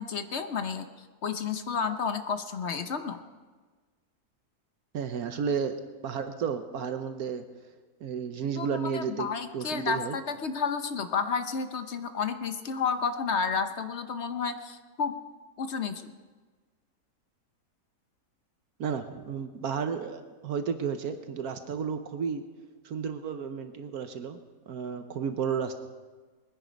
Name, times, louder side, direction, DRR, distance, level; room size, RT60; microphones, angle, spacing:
voice 1, 0.0-3.2 8.6-15.2 15.6-16.1, left 5 dB, 50° left, 8 dB, 1.0 m, -31 dB
voice 2, 4.9-5.8 6.0-7.4 8.0-9.3 9.5-10.2 18.8-22.4 22.8-24.4 24.7-25.8, right 6 dB, 70° right, 8 dB, 1.3 m, -32 dB
21.5 x 10.0 x 5.2 m, 1.4 s
omnidirectional pair, 1.7 m